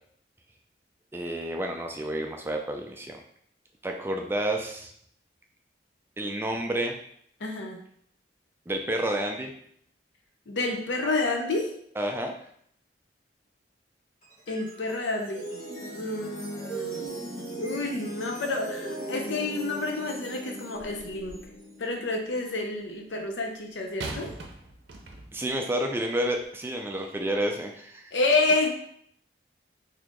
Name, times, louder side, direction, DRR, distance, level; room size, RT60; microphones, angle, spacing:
voice 1, 1.1-3.2 3.8-4.9 6.2-6.9 8.7-9.5 12.0-12.3 25.3-28.1, right 1 dB, 15° right, 3 dB, 0.3 m, -30 dB
voice 2, 7.4-7.8 10.5-11.7 14.5-15.6 15.9-17.1 17.5-21.4 21.8-24.3 28.1-28.7, left 2 dB, 80° left, 3 dB, 0.6 m, -29 dB
sound 1, 14.2-23.5, right 2 dB, 40° left, 1.3 m, -39 dB
sound 2, 20.7-21.6 24.0-25.5 26.3-26.4, right 2 dB, 70° right, 0.6 m, -41 dB
4.1 x 2.8 x 3.0 m, 0.67 s
head